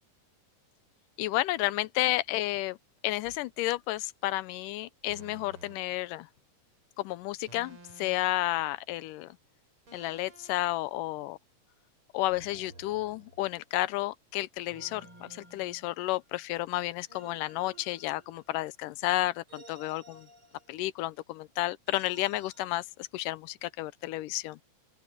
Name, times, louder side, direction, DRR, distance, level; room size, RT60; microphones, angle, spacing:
voice 1, 1.2-2.8 3.0-6.3 7.0-9.4 9.9-11.4 12.1-20.3 20.7-24.6, left 17 dB, 85° left, 2.2 m, -32 dB
sound 1, 3.2-3.5 5.1-5.8 7.5-8.4 9.9-10.6 12.3-13.7 14.7-16.3 17.1-18.7 19.5-21.0 21.9-22.6, right 2 dB, 40° right, 5.7 m, -54 dB
open air
omnidirectional pair, 3.8 m